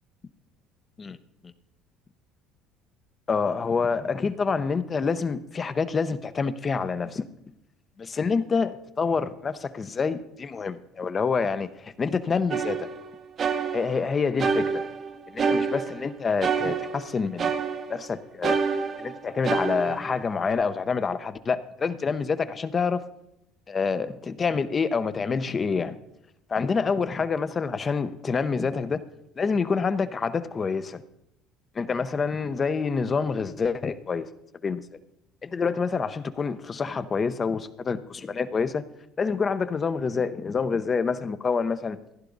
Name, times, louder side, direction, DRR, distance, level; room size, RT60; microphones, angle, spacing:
voice 1, 3.3-7.2 8.0-12.9 13.7-14.8 15.3-17.5 17.9-18.6 19.0-23.0 23.7-26.0 26.5-29.0 29.4-31.0 31.7-34.3 34.6-34.8 35.4-38.9 39.2-42.0, left 5 dB, 30° left, 12 dB, 0.8 m, -27 dB
sound 1, 12.5-14.1 14.4-16.1 16.4-18.1 18.4-20.5, right 5 dB, 40° right, 0.9 m, -28 dB
15.0 x 11.0 x 4.0 m, 0.83 s
supercardioid pair, 100°, 0 cm